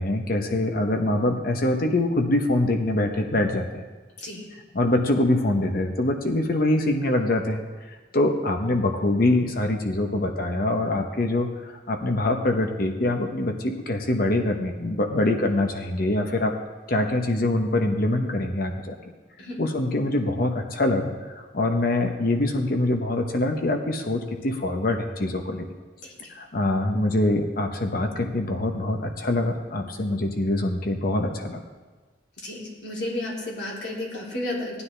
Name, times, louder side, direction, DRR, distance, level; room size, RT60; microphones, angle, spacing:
voice 1, 0.0-3.8 4.7-7.6 8.1-16.5 16.9-18.9 19.6-25.7 26.3-31.6, left 1 dB, 50° left, 4 dB, 0.9 m, -24 dB
voice 2, 32.4-34.8, left 1 dB, 70° left, -4 dB, 3.2 m, -32 dB
17.5 x 9.9 x 3.3 m, 1.3 s
head